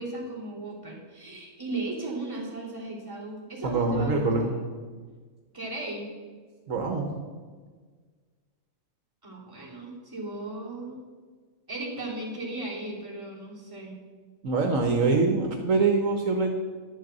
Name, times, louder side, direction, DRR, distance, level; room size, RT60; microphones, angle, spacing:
voice 1, 0.0-4.6 5.5-6.1 9.2-11.0 11.7-14.0, right 2 dB, 15° right, -6 dB, 3.2 m, -36 dB
voice 2, 3.6-4.5 6.7-7.1 14.4-16.5, right 3 dB, 70° right, 3 dB, 1.4 m, -24 dB
11.0 x 6.6 x 6.7 m, 1.5 s
omnidirectional pair, 1.4 m